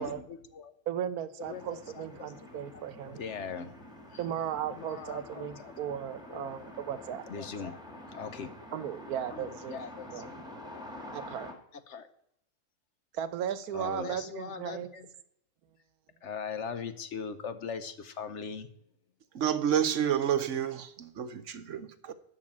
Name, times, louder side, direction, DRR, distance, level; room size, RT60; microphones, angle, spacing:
voice 1, 0.0-0.7 1.4-3.7 4.1-4.2 4.7-6.0 6.3-7.8 8.1-8.5 9.3-10.4 10.7-10.9 11.9-12.1 13.7-15.1 16.2-18.7, left 6 dB, 55° left, 11 dB, 1.1 m, -41 dB
voice 2, 0.9-3.2 4.2-7.3 8.7-9.8 10.1-10.5 11.1-11.5 13.1-14.9, right 9 dB, 85° right, 14 dB, 1.3 m, -36 dB
sound 1, 1.4-11.5, left 1 dB, 5° right, 1.9 m, -47 dB
voice 3, 19.3-22.1, right 9 dB, 60° right, 11 dB, 1.1 m, -29 dB
12.5 x 4.8 x 8.8 m, 0.76 s
omnidirectional pair, 1.5 m